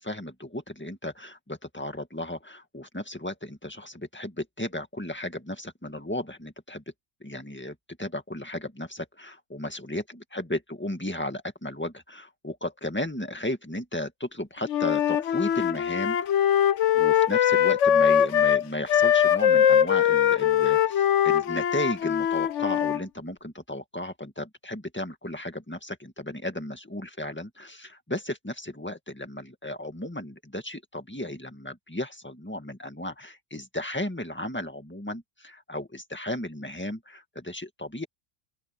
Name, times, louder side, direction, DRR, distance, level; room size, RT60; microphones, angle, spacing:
voice 1, 0.0-6.8 7.2-16.4 16.9-38.1, left 1 dB, 10° left, 1.9 m, -35 dB
Wind instrument woodwind instrument, 14.7-23.0, left 9 dB, 85° left, 1.1 m, -22 dB
open air
omnidirectional pair, 1.2 m